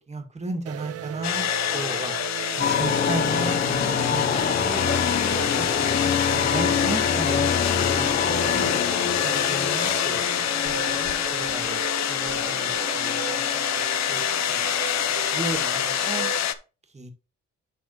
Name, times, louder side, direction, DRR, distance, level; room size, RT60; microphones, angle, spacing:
voice 1, 0.1-1.5 1.7-2.2 2.5-5.0 5.6-5.7 6.3-7.5 7.9-8.2 8.5-8.8 9.2-10.3 10.6-13.4 14.1-14.2 14.5-14.7 15.3-16.3 16.9-17.1, right 2 dB, 20° right, 5 dB, 2.0 m, -34 dB
sound 1, 0.7-16.4, right 12 dB, 55° right, 0.5 m, -37 dB
sound 2, 1.2-16.5, left 10 dB, 65° left, 0.8 m, -26 dB
sound 3, 2.6-14.0, left 7 dB, 35° left, 0.7 m, -27 dB
12.0 x 4.1 x 3.0 m, 0.32 s
cardioid pair, 90°, 30 cm